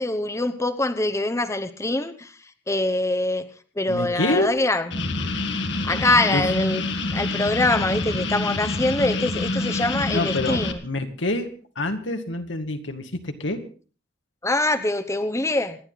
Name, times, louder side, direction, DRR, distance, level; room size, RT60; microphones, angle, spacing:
voice 1, 0.0-2.4 2.7-3.5 3.8-5.1 5.8-6.8 7.1-10.8 14.4-15.8, left 2 dB, 15° left, 8 dB, 1.0 m, -24 dB
voice 2, 3.9-4.6 6.3-6.4 10.1-11.5 11.8-13.6, left 2 dB, 85° left, 5 dB, 2.2 m, -26 dB
sound 1, 4.9-10.7, left 2 dB, 70° left, 1.8 m, -27 dB
27.5 x 11.0 x 4.1 m, 0.39 s
head